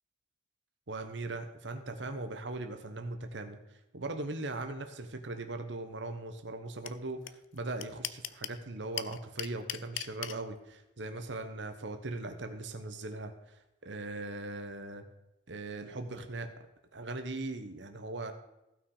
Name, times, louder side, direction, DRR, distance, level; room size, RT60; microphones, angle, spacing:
voice 1, 0.9-15.0 15.5-16.5 16.9-18.3, right 2 dB, 70° right, 7 dB, 1.0 m, -39 dB
sound 1, 6.9-7.0 7.3-7.4 7.6-8.6 9.0-10.3, left 13 dB, 90° left, 0.5 m, -36 dB
15.5 x 6.0 x 4.8 m, 0.93 s
head